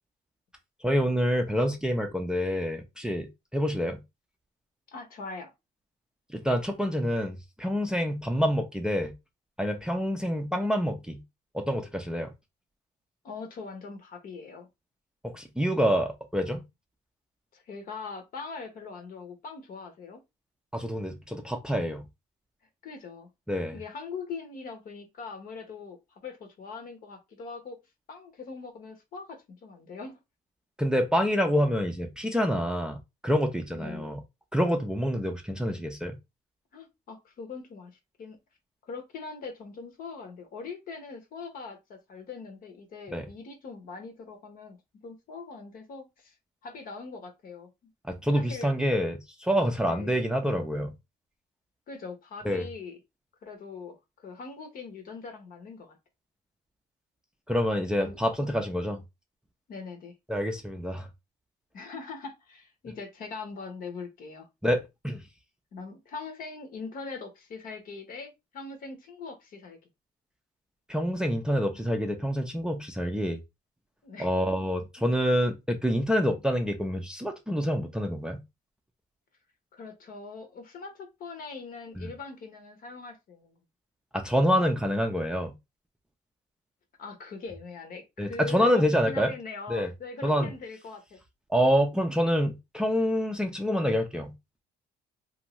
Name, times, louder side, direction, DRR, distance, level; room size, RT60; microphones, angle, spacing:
voice 1, 0.8-4.0 6.3-9.1 9.6-11.2 11.5-12.3 15.2-16.6 20.7-22.0 23.5-23.8 30.8-34.2 34.5-36.2 43.1-43.3 48.1-50.9 52.4-52.7 57.5-59.0 60.3-61.1 64.6-65.2 70.9-73.4 74.2-78.4 82.0-82.1 84.1-85.5 88.2-89.3 89.7-89.9 90.2-90.5 91.5-94.3, equal, 5° right, 0.5 m, -27 dB
voice 2, 4.9-5.5 13.2-14.7 17.5-20.2 22.8-23.3 23.7-27.8 28.1-30.2 33.7-34.1 36.7-37.9 38.2-38.4 38.8-44.8 45.0-46.3 46.6-47.7 48.3-48.7 49.8-50.2 51.9-53.0 53.4-56.0 58.0-58.2 59.7-60.1 61.7-64.5 65.7-69.8 74.0-74.3 75.0-75.1 79.7-83.6 87.0-91.2, left 4 dB, 55° left, 1.0 m, -41 dB
2.6 x 2.5 x 3.0 m
cardioid pair, 110°, 17 cm